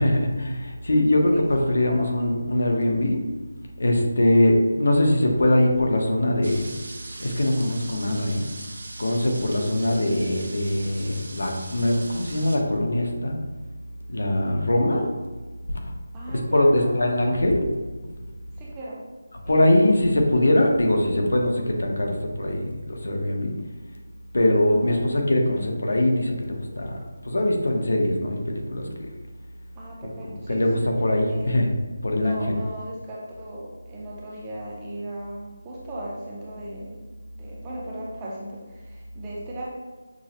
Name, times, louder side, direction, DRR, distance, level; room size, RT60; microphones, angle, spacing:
voice 1, 0.0-3.2 3.8-6.7 7.2-8.5 9.0-13.4 14.1-15.1 16.3-17.7 19.5-23.5 24.3-29.1 30.5-31.7 32.0-32.5, left 1 dB, 70° left, 2 dB, 0.7 m, -22 dB
voice 2, 1.1-2.1 16.1-16.9 18.6-19.1 19.4-20.3 24.8-25.0 29.8-30.9 31.3-31.7 32.2-37.1 37.3-39.6, right 1 dB, 10° right, -5 dB, 0.4 m, -37 dB
sound 1, 6.4-12.6, right 2 dB, 55° right, 0.6 m, -41 dB
6.0 x 2.0 x 2.9 m, 1.3 s
figure-of-eight pair, 175°, 0 cm